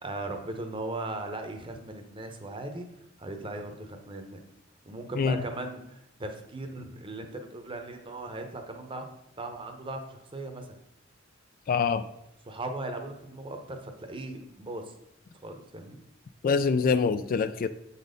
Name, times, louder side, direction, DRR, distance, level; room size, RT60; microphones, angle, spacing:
voice 1, 0.0-2.9 3.2-4.4 4.8-9.1 9.4-10.8 12.4-14.9 15.4-16.0, right 2 dB, 25° right, 5 dB, 0.8 m, -38 dB
voice 2, 11.7-12.0 16.4-17.7, left 5 dB, 45° left, 12 dB, 0.3 m, -24 dB
7.3 x 4.2 x 5.1 m, 0.82 s
head